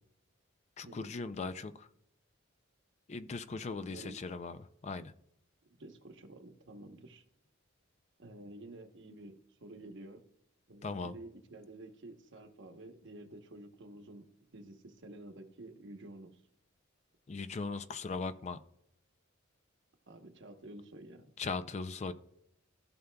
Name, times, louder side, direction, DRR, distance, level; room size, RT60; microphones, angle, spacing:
voice 1, 0.8-1.9 3.1-5.1 10.8-11.2 17.3-18.6 21.4-22.1, left 4 dB, 35° left, 12 dB, 0.4 m, -39 dB
voice 2, 3.7-4.2 5.7-7.2 8.2-10.2 10.7-16.4 20.1-21.3, right 2 dB, 60° right, 6 dB, 1.0 m, -50 dB
14.5 x 6.7 x 2.3 m, 0.77 s
head